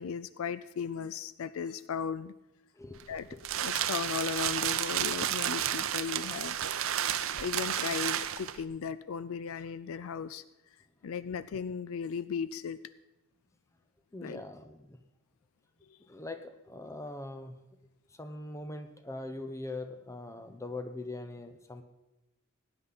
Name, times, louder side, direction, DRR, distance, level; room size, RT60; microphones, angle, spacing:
voice 1, 0.0-2.3 3.1-3.3 3.6-6.6 6.9-10.4 11.0-12.8 14.2-14.4, left 6 dB, 65° left, 16 dB, 0.4 m, -36 dB
voice 2, 2.8-3.7 14.1-15.0 16.1-17.6 18.2-21.8, left 2 dB, 15° left, 8 dB, 0.8 m, -42 dB
sound 1, 2.9-8.6, right 10 dB, 60° right, 0.6 m, -32 dB
18.0 x 9.7 x 4.1 m, 0.98 s
head